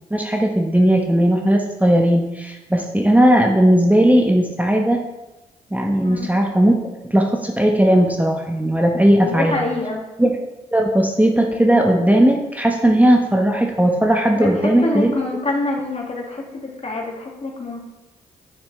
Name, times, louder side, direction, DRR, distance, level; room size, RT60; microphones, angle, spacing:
voice 1, 0.1-5.0 5.7-9.6 10.2-10.3 10.7-15.1, right 1 dB, 10° right, 1 dB, 1.2 m, -17 dB
voice 2, 6.0-6.3 9.2-10.0 14.4-17.8, left 2 dB, 40° left, 0 dB, 2.1 m, -26 dB
9.6 x 6.3 x 3.3 m, 1.0 s
hypercardioid pair, 40°, 17 cm